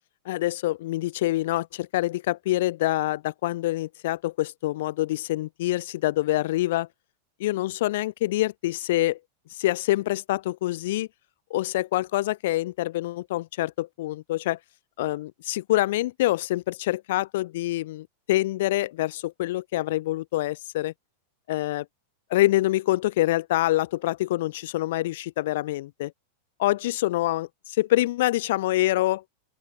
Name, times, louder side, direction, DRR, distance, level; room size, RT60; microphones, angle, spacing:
voice 1, 0.3-6.9 7.4-9.2 9.6-11.1 11.5-14.6 15.0-20.9 21.5-21.9 22.3-26.1 26.6-29.2, left 16 dB, 55° left, 2.3 m, -26 dB
open air
figure-of-eight pair, 90°, 0 cm